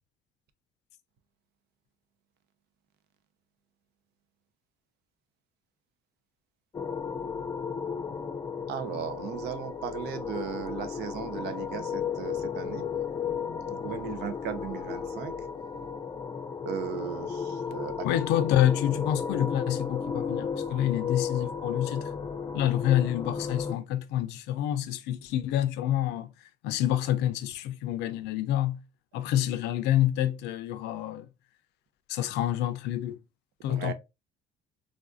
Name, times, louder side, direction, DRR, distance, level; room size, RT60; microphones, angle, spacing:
sound 1, 6.7-23.7, left 6 dB, 25° left, 0.4 m, -34 dB
voice 1, 8.7-12.9 13.7-15.3 16.6-18.1 18.3-18.4 33.7-33.9, right 9 dB, 75° right, 0.6 m, -37 dB
voice 2, 18.0-22.1 22.5-26.3 26.6-28.8 29.1-31.3 32.1-33.2 33.6-33.9, left 12 dB, 85° left, 0.4 m, -27 dB
3.4 x 2.4 x 2.4 m
cardioid pair, 110°, 17 cm